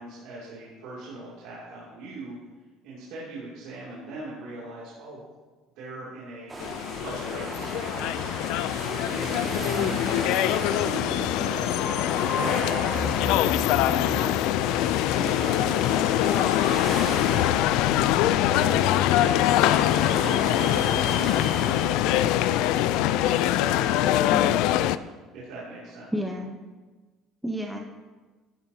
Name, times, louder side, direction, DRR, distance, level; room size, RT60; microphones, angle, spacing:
voice 1, 0.0-2.4 2.8-5.2 5.8-6.6 7.0-8.3 9.1-10.5 10.8-13.3 13.8-14.4 15.1-17.8 18.3-18.9 19.2-19.6 20.1-23.0 23.6-24.6 25.3-26.1, right 2 dB, 70° right, -7 dB, 2.6 m, -40 dB
sound 1, 6.5-24.1, right 1 dB, 20° right, 1.9 m, -37 dB
sound 2, 6.6-25.0, left 13 dB, 75° left, 0.3 m, -24 dB
sound 3, 7.3-16.4, left 3 dB, 45° left, 3.2 m, -36 dB
voice 2, 24.3-24.8 26.1-26.6 27.4-27.8, equal, 5° right, 0 dB, 0.8 m, -32 dB
13.0 x 10.0 x 2.8 m, 1.3 s
cardioid pair, 155°, 0 cm